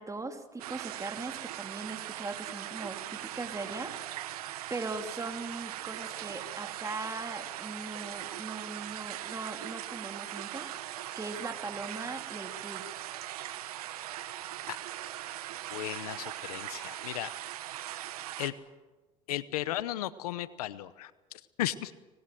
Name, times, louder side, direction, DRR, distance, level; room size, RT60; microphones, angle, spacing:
voice 1, 0.0-3.9 4.7-10.7 11.1-12.9, right 3 dB, 15° right, 5 dB, 3.1 m, -40 dB
sound 1, 0.6-18.5, right 13 dB, 90° right, 1.4 m, -40 dB
voice 2, 15.7-17.3 18.4-18.5 19.3-21.9, left 14 dB, 85° left, 17 dB, 0.9 m, -35 dB
25.5 x 20.0 x 7.8 m, 1.2 s
hypercardioid pair, 80°, 19 cm